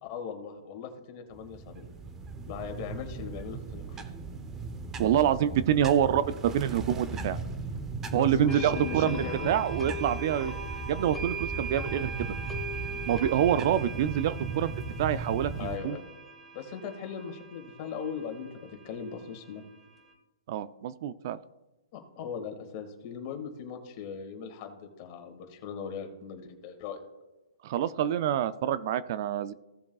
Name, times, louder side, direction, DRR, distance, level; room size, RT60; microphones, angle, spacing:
voice 1, 0.0-1.9 2.5-4.0 8.1-9.9 15.6-16.0 16.5-19.7 21.9-27.0, left 7 dB, 35° left, 5 dB, 2.0 m, -39 dB
sound 1, 1.3-15.8, right 4 dB, 15° right, 0.8 m, -37 dB
voice 2, 5.0-7.4 8.1-9.2 9.4-10.5 10.9-12.3 13.1-16.0 20.5-21.4 27.6-29.5, right 10 dB, 45° right, 14 dB, 0.4 m, -26 dB
sound 2, 8.5-20.1, right 3 dB, 5° left, 1.4 m, -41 dB
16.5 x 7.1 x 2.4 m, 1.1 s
hypercardioid pair, 145°, 3 cm